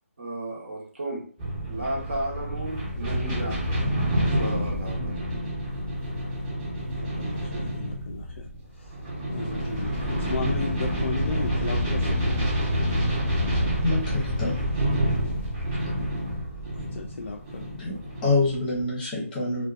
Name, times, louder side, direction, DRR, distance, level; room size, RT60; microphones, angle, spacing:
voice 1, 0.2-1.3 1.7-3.9 4.3-5.3, right 1 dB, 50° right, 1.0 m, -34 dB
sound 1, 1.4-18.9, equal, 20° right, 0.9 m, -28 dB
voice 2, 7.0-8.9 9.3-12.4 16.7-17.7, left 5 dB, 60° left, 0.4 m, -36 dB
voice 3, 13.8-14.6 17.8-18.0 18.2-19.7, left 3 dB, 15° left, 0.7 m, -26 dB
2.5 x 2.2 x 2.4 m
figure-of-eight pair, 160°, 8 cm